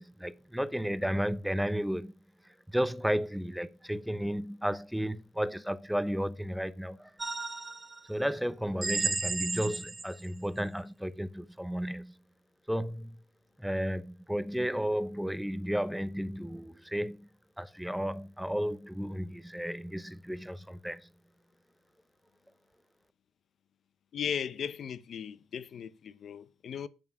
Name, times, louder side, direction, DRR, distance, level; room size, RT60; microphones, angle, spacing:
voice 1, 0.0-2.1 2.4-7.1 8.1-12.1 12.7-13.2 13.6-17.3 17.6-21.1, equal, ahead, 0.7 m, -33 dB
sound 1, 7.2-8.0 8.8-10.3, right 3 dB, 25° right, 1.3 m, -33 dB
voice 2, 24.1-26.9, left 8 dB, 60° left, 0.7 m, -37 dB
8.9 x 7.4 x 6.0 m
cardioid pair, 90°, 0 cm